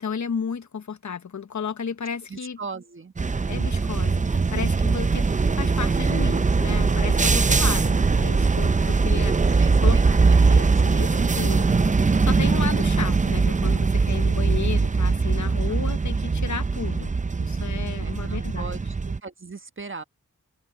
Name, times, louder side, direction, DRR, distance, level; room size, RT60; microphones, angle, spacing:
voice 1, 0.0-2.6 3.5-5.3 5.6-9.5 9.8-18.8, left 6 dB, 65° left, 1.1 m, -33 dB
voice 2, 2.3-3.1 9.5-10.4 10.7-11.3 15.7-15.8 18.0-20.0, right 4 dB, 40° right, 1.3 m, -38 dB
sound 1, 3.2-19.2, right 4 dB, 25° right, 0.6 m, -21 dB
open air
cardioid pair, 50°, 32 cm